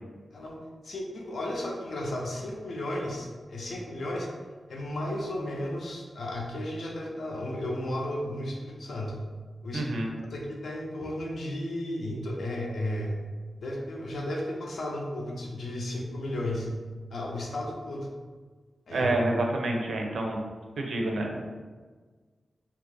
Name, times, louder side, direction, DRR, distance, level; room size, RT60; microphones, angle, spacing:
voice 1, 0.8-4.3 4.7-9.2 9.6-9.9 10.3-13.2 13.6-16.7 17.1-18.1 18.9-19.1, left 1 dB, 60° left, -1 dB, 0.6 m, -34 dB
voice 2, 9.7-10.1 18.9-20.4 20.8-21.5, right 2 dB, 85° right, 1 dB, 0.5 m, -28 dB
2.9 x 2.4 x 3.6 m, 1.4 s
wide cardioid pair, 175°, 0 cm